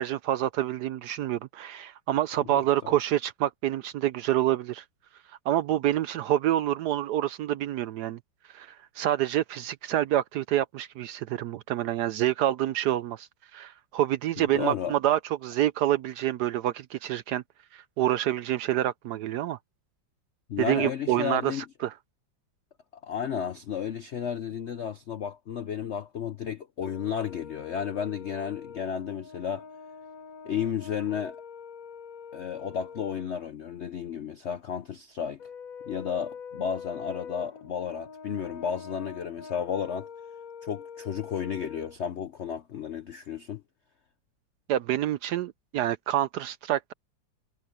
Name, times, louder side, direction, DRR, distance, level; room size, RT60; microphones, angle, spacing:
voice 1, 0.0-4.8 5.5-8.2 8.5-17.4 17.7-19.6 20.6-21.9 44.7-46.9, right 12 dB, 70° right, 1.0 m, -27 dB
voice 2, 2.4-2.9 14.4-15.0 20.5-21.6 23.0-29.6 30.4-31.4 32.3-35.4 35.9-40.1 40.6-43.6, left 8 dB, 70° left, 0.6 m, -33 dB
Brass instrument, 26.8-33.3 35.4-42.0, left 6 dB, 50° left, 1.5 m, -44 dB
omnidirectional pair, 2.1 m